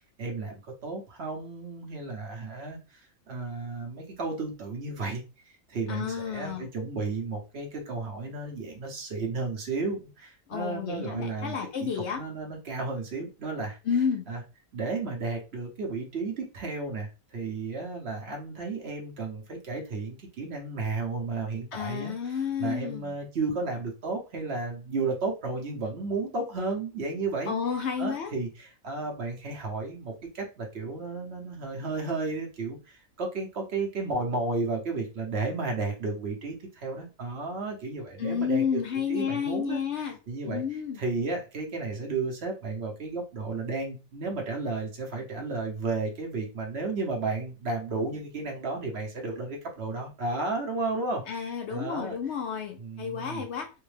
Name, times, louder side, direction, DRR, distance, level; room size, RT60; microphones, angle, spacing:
voice 1, 0.2-14.4 14.7-39.8 40.3-40.6 41.0-52.4 52.8-53.4, right 3 dB, 55° right, 1 dB, 0.9 m, -33 dB
voice 2, 5.9-6.7 10.5-12.2 13.9-14.3 21.7-23.1 27.5-28.3 38.2-40.2 40.5-41.0 51.3-53.7, left 7 dB, 65° left, 4 dB, 0.7 m, -31 dB
3.4 x 2.1 x 3.2 m, 0.31 s
omnidirectional pair, 1.4 m